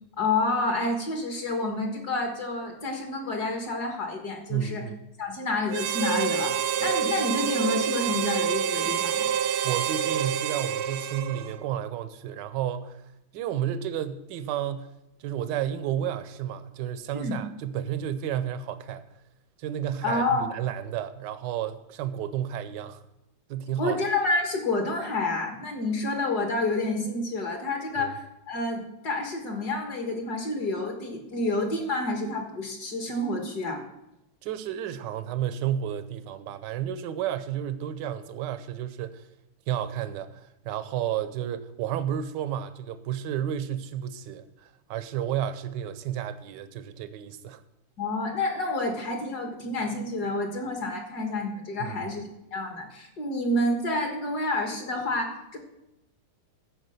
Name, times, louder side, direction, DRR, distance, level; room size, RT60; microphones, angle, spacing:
voice 1, 0.2-4.8 5.2-9.3 17.2-17.4 20.0-20.5 23.8-33.8 48.0-55.6, left 2 dB, 50° left, 2.0 m, -29 dB
voice 2, 4.5-4.9 9.6-13.0 13.3-14.9 15.2-19.0 19.6-23.0 23.5-24.0 28.0-28.1 34.4-39.3 39.7-47.6 51.8-52.0, right 10 dB, 65° right, 1.2 m, -32 dB
Harmonica, 5.7-11.7, right 9 dB, 85° right, 1.5 m, -27 dB
14.5 x 5.0 x 6.5 m
omnidirectional pair, 2.4 m